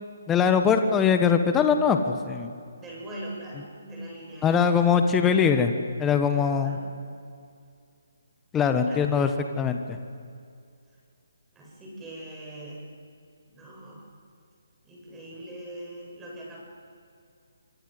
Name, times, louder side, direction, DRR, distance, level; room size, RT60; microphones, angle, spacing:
voice 1, 0.3-2.5 4.4-5.7 6.0-6.8 8.5-9.3 9.6-9.8, left 6 dB, 15° left, 7 dB, 1.4 m, -22 dB
voice 2, 2.8-5.0 6.3-6.8 8.9-9.1 11.5-12.9 13.5-14.0 14.8-16.6, right 1 dB, 10° right, -2 dB, 8.0 m, -41 dB
26.0 x 24.5 x 8.0 m, 2.3 s
figure-of-eight pair, 145°, 0 cm